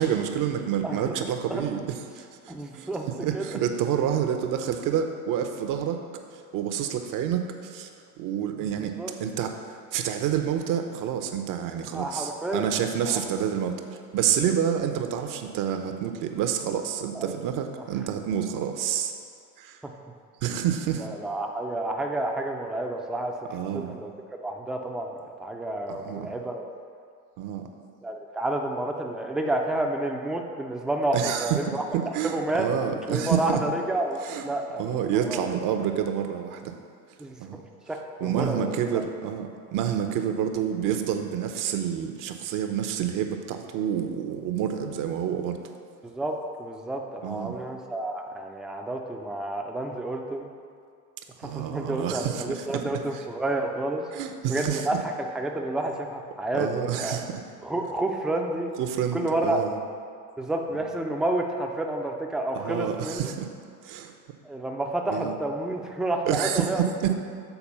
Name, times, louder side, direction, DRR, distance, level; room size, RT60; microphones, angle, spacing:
voice 1, 0.0-1.8 2.1-2.9 3.2-6.0 6.3-7.9 8.2-9.5 9.9-19.1 19.6-19.8 20.4-21.1 23.5-24.0 25.9-26.3 27.4-27.7 31.1-33.6 34.2-34.5 34.8-36.7 37.4-37.6 38.2-45.6 47.2-47.6 51.4-52.8 54.1-55.0 56.5-57.4 58.8-59.8 62.5-63.5 63.8-64.1 65.1-65.4 66.3-67.1, right 9 dB, 45° right, 5 dB, 0.8 m, -28 dB
voice 2, 0.8-1.2 1.5-1.6 2.5-3.1 3.3-3.6 8.5-9.1 11.9-12.7 13.1-13.2 17.1-17.4 19.8-19.9 21.0-23.5 23.7-24.1 24.4-26.7 28.0-31.8 32.2-32.7 33.1-35.5 37.2-37.6 37.9-39.0 46.0-50.5 51.5-54.1 54.5-57.2 57.6-58.7 59.1-59.6 60.4-63.3 64.4-66.9, right 1 dB, ahead, 2 dB, 0.5 m, -30 dB
7.0 x 4.2 x 5.4 m, 2.2 s
hypercardioid pair, 70°, 45 cm